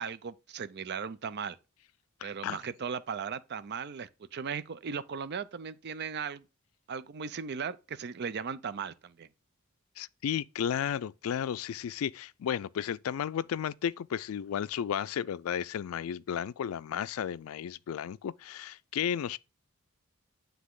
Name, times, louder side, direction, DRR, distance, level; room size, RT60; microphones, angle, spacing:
voice 1, 0.0-1.6 2.2-6.4 6.9-9.3, right 6 dB, 55° right, 0.5 m, -37 dB
voice 2, 2.2-2.6 10.0-19.4, left 8 dB, 80° left, 0.3 m, -33 dB
9.4 x 3.4 x 3.8 m
head